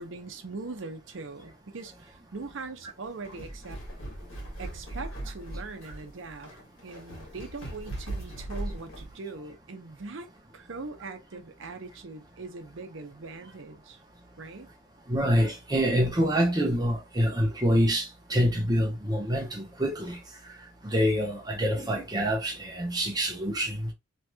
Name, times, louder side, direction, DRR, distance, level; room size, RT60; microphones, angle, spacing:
voice 1, 0.0-3.8 4.6-6.5 6.8-10.3 10.5-14.0 14.4-14.7, right 3 dB, 70° right, 0.6 m, -41 dB
sound 1, 3.1-9.1, right 1 dB, 80° left, 1.6 m, -39 dB
voice 2, 15.1-20.2 20.8-23.9, equal, 20° right, 0.7 m, -26 dB
3.1 x 2.9 x 2.2 m
head